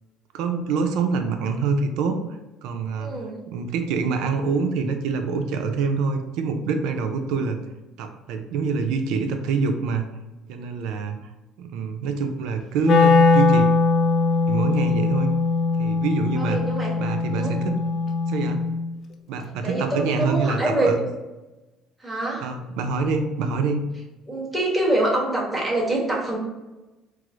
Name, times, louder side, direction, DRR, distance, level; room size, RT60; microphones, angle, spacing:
voice 1, 0.3-2.2 2.6-3.1 3.5-7.6 8.0-10.1 10.5-11.2 11.6-13.7 14.5-15.3 15.8-16.6 17.0-17.8 18.3-18.6 19.3-21.0 22.4-23.9, right 5 dB, 80° right, 6 dB, 0.5 m, -25 dB
voice 2, 3.0-3.4 16.4-16.9 17.3-17.5 19.6-20.9 22.0-22.5 24.3-26.4, right 1 dB, 10° right, -4 dB, 1.3 m, -25 dB
Wind instrument woodwind instrument, 12.8-18.9, left 4 dB, 50° left, 0.4 m, -20 dB
4.7 x 2.0 x 3.7 m, 1.1 s
cardioid pair, 110°, 0 cm